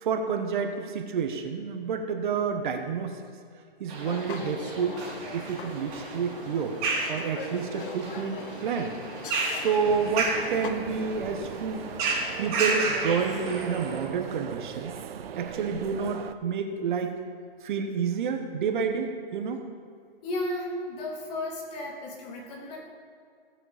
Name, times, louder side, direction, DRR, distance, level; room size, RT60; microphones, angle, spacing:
voice 1, 0.0-3.2 3.8-5.0 5.3-6.8 7.1-8.9 9.5-11.9 12.4-14.9 15.4-17.2 17.6-19.6, right 6 dB, 50° right, 5 dB, 1.3 m, -29 dB
sound 1, 3.9-14.1, right 3 dB, 30° right, 3.0 m, -33 dB
sound 2, 4.0-10.7, left 7 dB, 60° left, 0.9 m, -43 dB
sound 3, 9.8-16.3, right 8 dB, 70° right, 0.7 m, -39 dB
voice 2, 20.2-22.8, left 1 dB, 40° left, -2 dB, 3.1 m, -34 dB
17.0 x 7.8 x 4.3 m, 2.2 s
hypercardioid pair, 140°, 30 cm